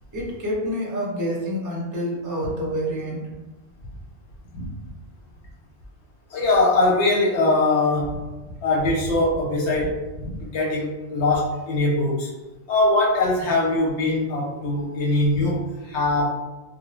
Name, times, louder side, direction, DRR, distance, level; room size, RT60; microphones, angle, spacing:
voice 1, 0.1-3.3, equal, 20° right, -4 dB, 0.5 m, -27 dB
voice 2, 6.3-8.2 8.6-12.3 12.7-16.3, left 2 dB, 80° left, -4 dB, 0.9 m, -22 dB
2.6 x 2.0 x 3.0 m, 1.1 s
omnidirectional pair, 1.2 m